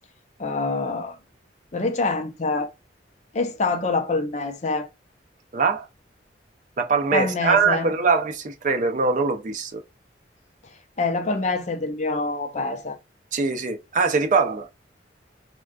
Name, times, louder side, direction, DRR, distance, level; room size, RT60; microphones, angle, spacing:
voice 1, 0.4-1.2 1.7-2.7 3.3-4.9 7.1-7.9 11.0-13.0, left 3 dB, 40° left, 0.5 m, -25 dB
voice 2, 5.5-5.9 6.8-9.8 13.3-14.7, right 4 dB, 45° right, 0.4 m, -22 dB
3.6 x 2.2 x 2.3 m
head